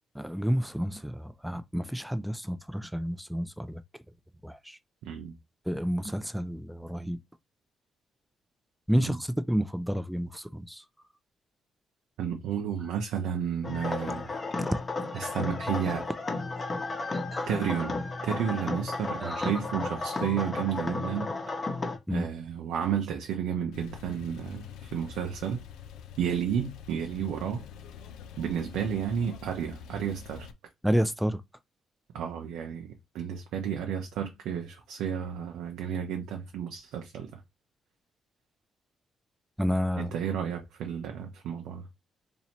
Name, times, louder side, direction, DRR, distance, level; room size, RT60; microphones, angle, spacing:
voice 1, 0.1-3.8 4.4-4.8 5.7-7.2 8.9-10.8 14.6-14.8 15.1-15.3 15.6-15.7 17.1-17.5 19.2-19.5 22.1-22.3 30.8-31.4 39.6-40.1, equal, ahead, 0.4 m, -30 dB
voice 2, 5.0-5.4 9.0-9.2 12.2-14.3 15.1-16.1 17.5-21.3 22.1-25.6 26.2-27.6 28.4-30.5 32.1-37.4 40.0-41.9, right 8 dB, 90° right, 0.6 m, -32 dB
sound 1, 13.6-22.0, left 3 dB, 30° left, 0.9 m, -33 dB
Male speech man speaking / Car / Idling, 23.7-30.5, left 8 dB, 90° left, 0.5 m, -46 dB
3.0 x 2.7 x 4.2 m
cardioid pair, 90°, 0 cm